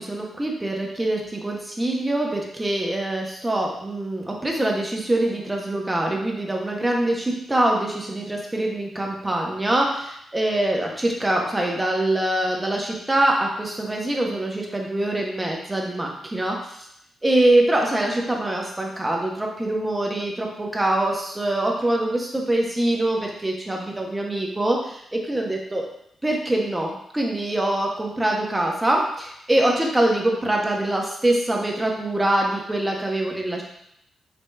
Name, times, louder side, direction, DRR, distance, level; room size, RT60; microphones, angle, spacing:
voice 1, 0.0-16.8 17.2-25.8 26.2-33.6, right 1 dB, 20° right, -1 dB, 1.1 m, -24 dB
5.3 x 2.9 x 3.4 m, 0.74 s
cardioid pair, 60°, 0 cm